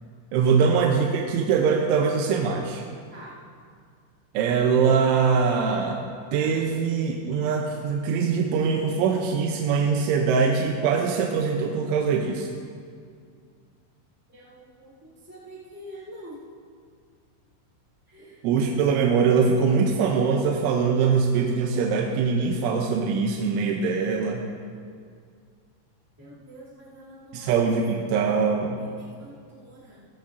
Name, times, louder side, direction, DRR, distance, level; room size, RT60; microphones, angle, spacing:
voice 1, 0.3-2.8 4.3-12.5 18.4-24.5 27.3-28.8, right 5 dB, 80° right, 1 dB, 3.1 m, -23 dB
voice 2, 14.3-16.4 18.1-18.4 26.2-27.6 28.8-30.1, equal, 5° right, -10 dB, 1.1 m, -46 dB
16.5 x 16.5 x 2.7 m, 2.2 s
omnidirectional pair, 5.7 m